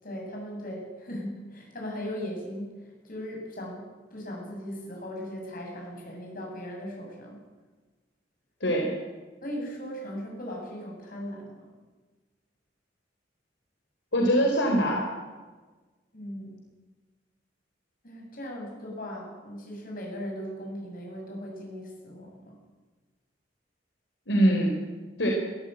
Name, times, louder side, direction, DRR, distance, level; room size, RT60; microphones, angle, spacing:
voice 1, 0.0-7.4 9.4-11.7 16.1-16.7 18.0-22.6, equal, 50° left, 0 dB, 7.8 m, -38 dB
voice 2, 8.6-8.9 14.1-15.0 24.3-24.7 25.2-25.3, equal, 75° left, 0 dB, 3.9 m, -23 dB
22.0 x 14.0 x 9.2 m, 1.3 s
head